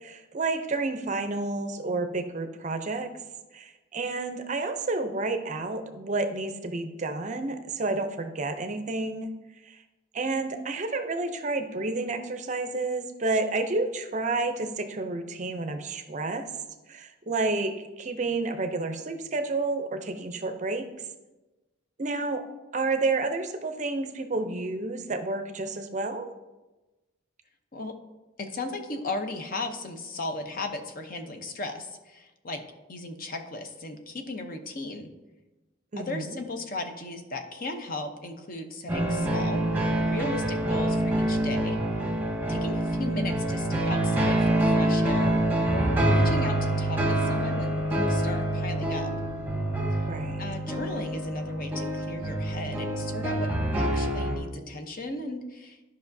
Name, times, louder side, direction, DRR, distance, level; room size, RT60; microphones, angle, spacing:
voice 1, 0.0-3.1 3.5-9.3 9.6-9.8 10.1-16.5 16.9-20.9 22.0-22.4 22.7-26.3 35.9-36.4 50.1-50.4, right 3 dB, 35° right, 7 dB, 0.5 m, -30 dB
voice 2, 28.4-32.6 32.9-35.1 36.0-39.6 40.0-42.0 42.5-45.4 45.7-49.1 50.4-53.5 53.8-55.8, left 2 dB, 45° left, 6 dB, 0.7 m, -36 dB
sound 1, 38.9-54.4, right 1 dB, 10° right, 0.9 m, -26 dB
12.0 x 5.3 x 2.6 m, 1.1 s
head